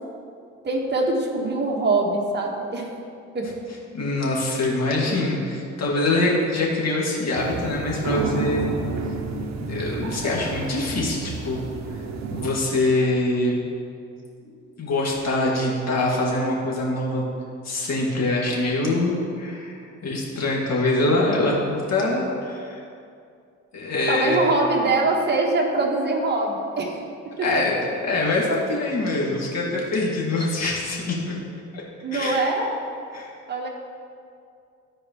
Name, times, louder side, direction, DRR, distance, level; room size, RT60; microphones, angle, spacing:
voice 1, 0.6-2.9 3.3-3.5 24.1-27.0 27.4-27.6 32.0-32.7 33.5-33.7, right 2 dB, 35° right, -1 dB, 1.3 m, -23 dB
voice 2, 3.9-8.7 9.6-11.6 11.9-12.0 12.3-13.6 14.4-17.2 17.6-22.8 23.7-24.4 27.4-31.4 31.7-31.8 32.1-32.5 33.1-33.3, left 2 dB, 60° left, -3 dB, 2.0 m, -24 dB
sound 1, 7.3-12.5, right 4 dB, 60° right, 0.7 m, -30 dB
13.5 x 4.6 x 3.0 m, 2.4 s
cardioid pair, 90°, 30 cm